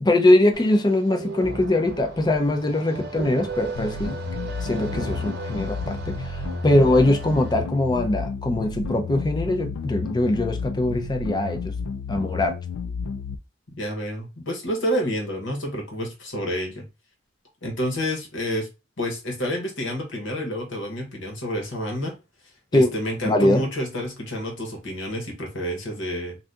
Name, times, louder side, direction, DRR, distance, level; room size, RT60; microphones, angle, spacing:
voice 1, 0.0-4.2 4.6-6.4 6.6-11.7 12.1-12.5 22.7-22.9 23.2-23.6, left 1 dB, 20° left, 0.5 m, -21 dB
sound 1, 0.5-7.5, right 3 dB, 55° right, 0.8 m, -35 dB
sound 2, 3.7-13.4, left 5 dB, 80° left, 0.3 m, -32 dB
voice 2, 13.8-16.8 17.6-18.7 19.0-22.1 22.7-26.4, equal, 65° left, 1.2 m, -29 dB
2.6 x 2.5 x 3.4 m
head